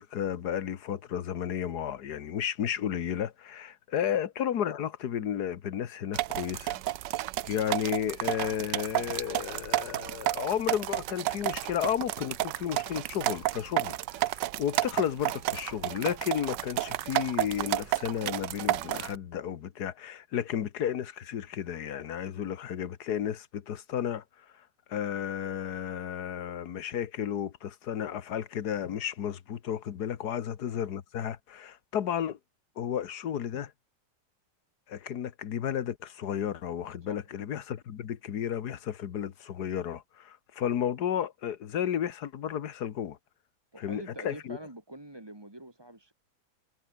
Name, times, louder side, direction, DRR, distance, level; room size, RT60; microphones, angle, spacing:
voice 1, 0.0-6.8 7.4-24.2 24.9-32.4 32.8-33.7 34.9-43.2 43.8-44.6, left 9 dB, 55° left, 1.7 m, -33 dB
sound 1, 6.1-19.2, right 15 dB, 70° right, 1.2 m, -31 dB
voice 2, 43.7-46.1, right 1 dB, 10° right, 2.5 m, -45 dB
omnidirectional pair, 2.1 m